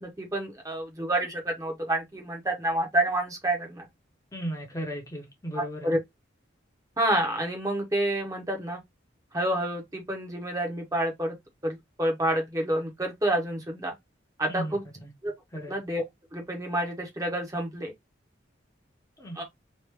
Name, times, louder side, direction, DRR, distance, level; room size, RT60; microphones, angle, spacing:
voice 1, 0.0-3.9 5.5-6.0 7.0-8.8 9.3-11.4 11.6-13.9 14.4-14.8 15.2-15.3 15.7-16.0 16.3-17.9 19.3-19.4, right 1 dB, 15° right, 0.9 m, -28 dB
voice 2, 4.3-5.9 14.5-14.7 15.0-15.1 15.5-15.8 19.2-19.4, equal, 15° left, 0.8 m, -35 dB
3.1 x 2.5 x 3.3 m
head